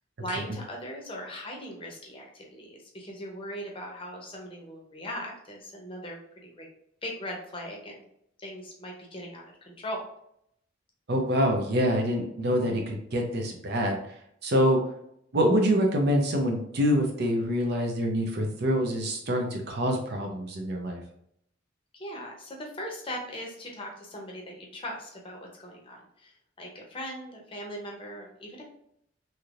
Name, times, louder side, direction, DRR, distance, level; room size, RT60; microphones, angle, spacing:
voice 1, 0.2-6.7 7.0-8.0 8.4-10.0 21.9-28.6, equal, 30° left, 0 dB, 0.7 m, -39 dB
voice 2, 11.1-14.0 14.4-14.8 15.3-21.0, equal, 60° right, 2 dB, 0.6 m, -25 dB
3.3 x 2.8 x 2.4 m, 0.73 s
head